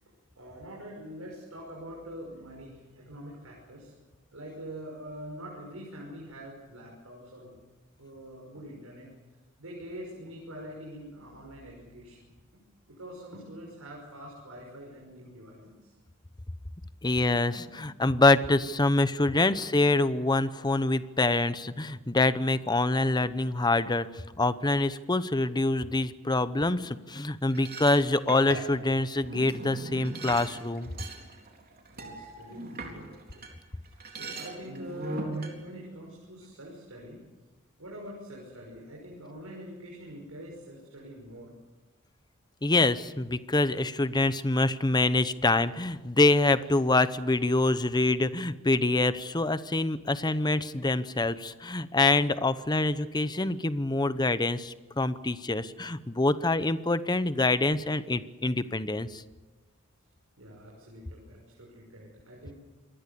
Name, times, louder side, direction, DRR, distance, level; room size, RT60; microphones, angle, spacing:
voice 1, 0.4-3.9 4.3-7.6 8.0-9.1 9.6-12.6 12.9-16.0 17.6-17.7 26.7-26.8 31.9-33.5 33.8-37.2 37.8-41.5 60.4-62.5, equal, 75° right, -2 dB, 5.9 m, -45 dB
voice 2, 17.0-26.8 27.1-30.9 42.6-59.2, left 2 dB, 20° left, 14 dB, 0.9 m, -25 dB
sound 1, 27.5-33.5 33.8-35.5, right 2 dB, 45° right, 4.0 m, -40 dB
27.0 x 20.5 x 6.9 m, 1.2 s
head